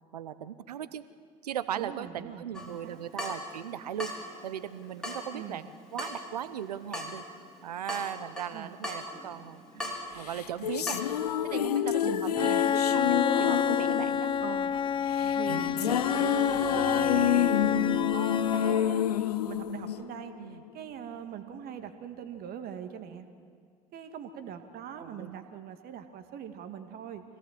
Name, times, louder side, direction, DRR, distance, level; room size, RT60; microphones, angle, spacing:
voice 1, 0.1-1.0 1.4-4.1 4.4-7.2 7.6-11.0 11.4-14.3 15.2-15.4 18.1-18.5 20.4-20.6 25.0-25.4, right 9 dB, 80° right, 14 dB, 0.9 m, -38 dB
voice 2, 1.7-3.0 5.3-5.6 8.5-8.7 12.0-12.6 14.4-14.7 15.3-19.1 19.4-23.3 23.9-27.2, right 9 dB, 50° right, 8 dB, 2.0 m, -42 dB
Water tap faucet / Drip, 2.5-11.1, left 1 dB, 5° left, 4.6 m, -41 dB
sound 1, 10.2-20.7, left 10 dB, 80° left, 0.7 m, -29 dB
Bowed string instrument, 12.4-19.1, left 7 dB, 25° left, 0.5 m, -28 dB
25.0 x 17.5 x 7.5 m, 2.1 s
figure-of-eight pair, 65°, 20 cm